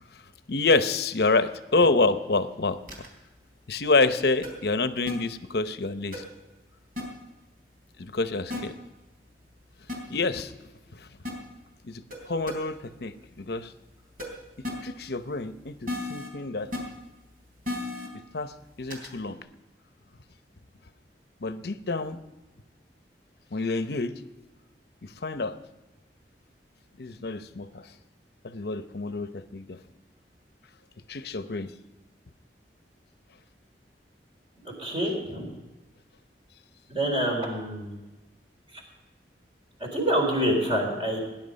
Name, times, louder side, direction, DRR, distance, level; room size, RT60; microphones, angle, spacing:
voice 1, 0.5-3.1 3.7-6.2 8.0-8.7 10.1-11.1 11.8-13.7 14.8-16.7 18.3-19.4 21.4-22.2 23.5-24.2 25.0-25.5 27.0-27.9 28.4-29.8 31.1-31.7, left 3 dB, 60° left, 11 dB, 0.8 m, -28 dB
sound 1, 2.9-3.1 4.4-4.5 5.1-5.2 6.1-6.2 7.0-7.1 8.5-8.6 9.9-10.0 11.2-11.3 12.1-12.2 12.5-12.6 14.2-14.3 14.6-14.7 15.9-16.3 16.7-16.8 17.6-18.1 18.9-19.1, left 2 dB, 55° right, 3.6 m, -32 dB
voice 2, 34.6-35.5 36.9-37.9 39.9-41.2, equal, 30° right, 1 dB, 4.1 m, -26 dB
18.5 x 10.5 x 5.2 m, 1.1 s
head